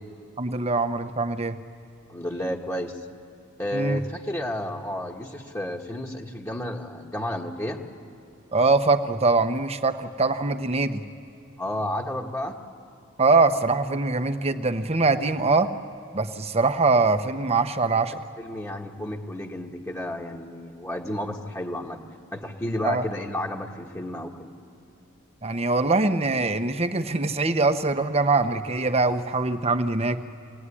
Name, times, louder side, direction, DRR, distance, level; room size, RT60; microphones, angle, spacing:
voice 1, 0.4-1.6 3.7-4.0 8.5-11.0 13.2-15.7 16.1-18.2 22.8-23.0 25.4-30.2, right 3 dB, 30° right, 9 dB, 1.0 m, -23 dB
voice 2, 2.1-3.1 3.6-7.8 11.6-12.6 18.4-22.0 22.3-24.5, left 1 dB, 15° left, -1 dB, 1.4 m, -31 dB
24.5 x 18.0 x 9.9 m, 2.9 s
head